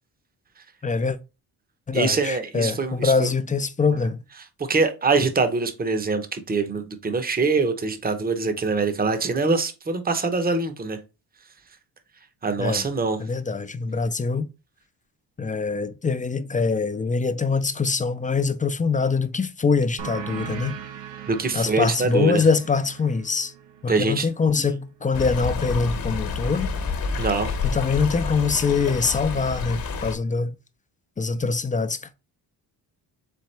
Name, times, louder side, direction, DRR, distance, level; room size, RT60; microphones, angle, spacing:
voice 1, 0.8-1.2 1.9-4.2 12.6-12.8 13.2-14.5 15.4-20.8 21.5-23.5 23.8-26.7 27.6-30.6 31.2-32.1, left 4 dB, 20° left, 0.4 m, -24 dB
voice 2, 1.9-3.3 4.6-11.0 12.4-13.2 21.3-22.4 23.9-24.3 27.2-27.5, right 4 dB, 20° right, 0.8 m, -24 dB
sound 1, 20.0-25.2, right 9 dB, 75° right, 0.9 m, -39 dB
Stream, 25.1-30.2, left 5 dB, 55° left, 1.2 m, -28 dB
4.3 x 3.6 x 3.2 m
cardioid pair, 80°, 43 cm